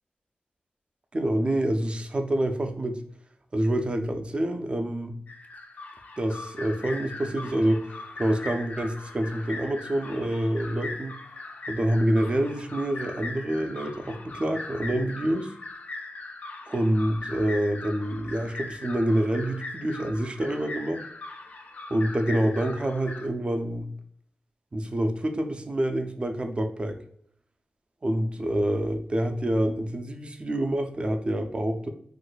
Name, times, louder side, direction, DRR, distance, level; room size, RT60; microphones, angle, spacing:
voice 1, 1.1-3.0 3.5-5.1 6.2-11.1 11.7-15.5 16.7-21.0 21.9-23.9 24.7-27.0 28.0-31.9, right 1 dB, 30° right, 5 dB, 0.4 m, -27 dB
sound 1, 5.3-23.3, left 3 dB, 55° left, 0.3 m, -40 dB
2.5 x 2.2 x 3.8 m, 0.66 s
wide cardioid pair, 95°, 3 cm